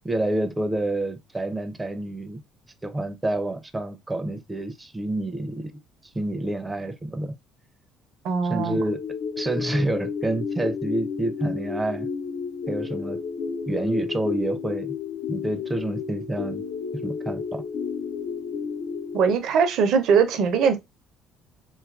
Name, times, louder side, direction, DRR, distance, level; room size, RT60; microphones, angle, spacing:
voice 1, 0.0-2.4 2.8-5.7 6.1-7.4 8.5-9.0 9.4-12.1 12.7-13.2 13.7-14.9 15.3-16.6 17.0-17.6, right 1 dB, 15° right, 0.4 m, -28 dB
voice 2, 8.2-8.8 19.1-20.8, right 6 dB, 70° right, 0.5 m, -21 dB
sound 1, 8.6-19.3, left 6 dB, 70° left, 0.3 m, -32 dB
2.7 x 2.3 x 2.3 m
supercardioid pair, 70°, 0 cm